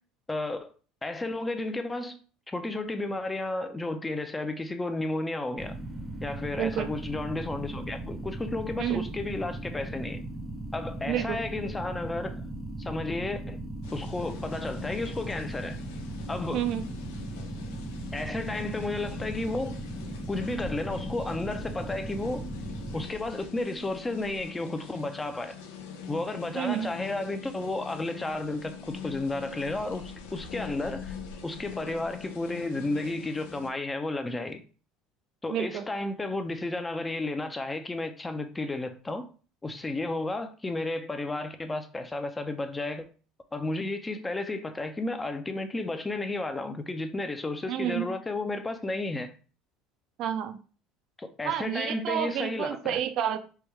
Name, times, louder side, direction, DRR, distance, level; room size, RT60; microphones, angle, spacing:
voice 1, 0.3-0.7 1.0-2.2 2.5-5.8 6.2-10.2 10.7-12.4 12.8-13.6 13.9-15.8 16.3-16.7 18.1-19.8 20.3-22.5 22.9-25.6 26.1-31.2 31.4-34.6 35.4-39.3 39.6-43.0 43.5-49.3 51.2-53.0, left 2 dB, 15° left, 0.4 m, -32 dB
sound 1, 5.6-23.0, right 1 dB, 20° right, 0.7 m, -38 dB
voice 2, 6.6-6.9 8.8-9.1 11.1-11.4 16.5-16.9 26.5-26.9 35.5-35.8 47.7-48.1 50.2-50.6 51.4-53.4, right 10 dB, 60° right, 0.4 m, -29 dB
sound 2, 13.8-33.7, left 6 dB, 85° left, 0.5 m, -43 dB
3.4 x 2.2 x 3.1 m
supercardioid pair, 90°, 0 cm